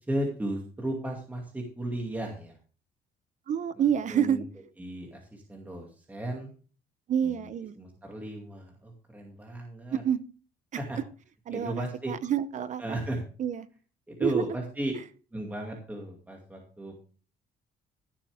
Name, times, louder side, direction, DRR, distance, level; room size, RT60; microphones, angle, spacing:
voice 1, 0.1-2.5 3.8-4.4 4.8-6.5 7.2-7.5 7.8-10.0 10.8-11.0 11.5-12.1 12.8-13.2 14.1-14.9 15.3-16.9, right 1 dB, 10° right, 0 dB, 2.3 m, -35 dB
voice 2, 3.5-4.4 7.1-7.7 9.9-10.2 11.5-12.8 13.4-13.7 14.2-14.4, right 9 dB, 45° right, 15 dB, 0.7 m, -28 dB
15.5 x 7.3 x 3.5 m, 0.39 s
cardioid pair, 110°, 17 cm